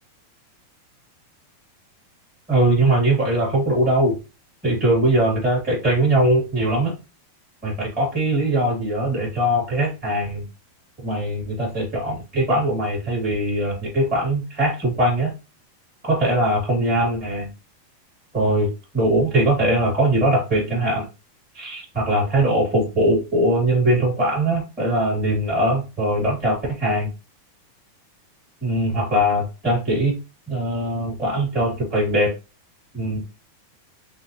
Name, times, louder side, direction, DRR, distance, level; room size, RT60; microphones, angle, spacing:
voice 1, 2.5-4.2 4.6-6.9 7.6-10.5 11.0-15.3 16.0-17.5 18.3-21.1 21.5-27.1 28.6-30.1 30.5-32.3 32.9-33.2, right 1 dB, 5° right, -5 dB, 0.7 m, -21 dB
5.8 x 2.0 x 2.8 m, 0.29 s
omnidirectional pair, 4.4 m